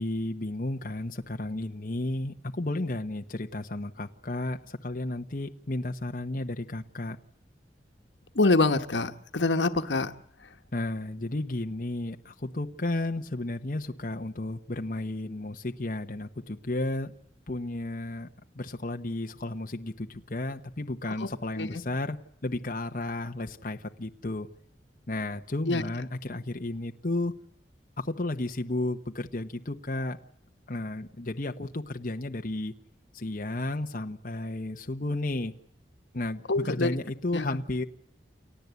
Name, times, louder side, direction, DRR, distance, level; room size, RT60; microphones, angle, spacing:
voice 1, 0.0-7.2 10.7-17.1 17.5-18.3 18.5-22.2 22.4-24.5 25.1-27.3 28.0-30.2 30.7-32.7 33.1-35.5 36.1-37.8, left 2 dB, 50° left, 4 dB, 1.0 m, -33 dB
voice 2, 8.3-10.1 21.2-21.3 21.6-21.7 25.7-25.8 36.5-36.9 37.3-37.6, left 3 dB, 90° left, 8 dB, 1.3 m, -25 dB
29.5 x 14.0 x 8.3 m, 0.71 s
head